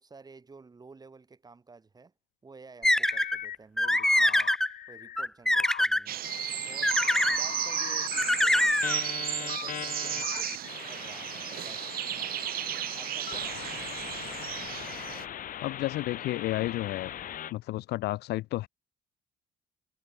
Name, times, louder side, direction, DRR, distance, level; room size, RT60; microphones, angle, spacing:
voice 1, 0.0-2.1 2.4-4.5 4.9-6.2 6.6-8.9 9.1-12.7 13.0-13.8, right 4 dB, 25° right, 4.7 m, -52 dB
sound 1, 2.8-3.4 3.8-4.7 5.2-6.0 6.8-7.4 8.2-9.0, left 1 dB, 5° left, 0.5 m, -24 dB
sound 2, 3.0-3.6 3.8-5.3 5.5-5.8 6.2-17.5, left 11 dB, 55° left, 1.6 m, -39 dB
sound 3, 6.1-15.2, right 13 dB, 60° right, 1.1 m, -34 dB
voice 2, 15.6-17.1 17.5-18.7, left 17 dB, 75° left, 1.1 m, -31 dB
cardioid pair, 110°, 17 cm